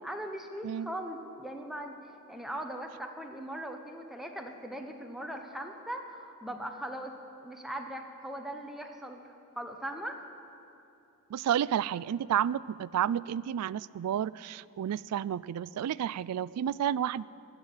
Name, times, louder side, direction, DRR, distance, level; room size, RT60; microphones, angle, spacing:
voice 1, 0.0-2.0 2.3-7.1 7.4-9.2 9.6-10.2, right 1 dB, ahead, 3 dB, 1.0 m, -39 dB
voice 2, 11.3-17.2, right 10 dB, 90° right, 20 dB, 0.3 m, -31 dB
15.5 x 6.3 x 9.9 m, 2.9 s
head